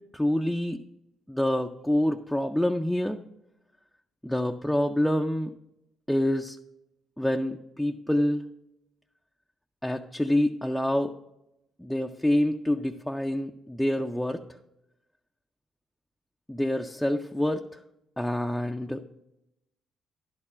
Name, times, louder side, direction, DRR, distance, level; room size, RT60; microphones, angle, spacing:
voice 1, 0.1-0.8 1.3-3.2 4.2-5.5 6.1-6.6 7.2-8.5 9.8-11.1 11.8-14.4 16.5-17.6 18.2-19.0, left 1 dB, 5° left, 3 dB, 0.5 m, -26 dB
10.5 x 4.4 x 5.7 m, 0.87 s
supercardioid pair, 60°, 0 cm